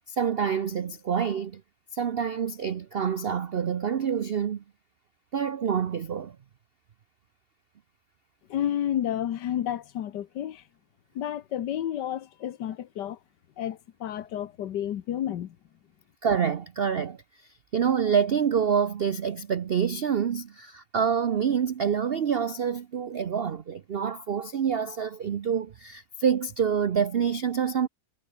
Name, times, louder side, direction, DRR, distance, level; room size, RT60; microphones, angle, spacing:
voice 1, 0.1-1.6 1.9-4.6 5.3-6.4 16.2-27.9, right 7 dB, 55° right, 0.7 m, -27 dB
voice 2, 8.5-10.6 11.1-13.2 13.6-15.6, left 11 dB, 85° left, 1.6 m, -31 dB
omnidirectional pair, 1.8 m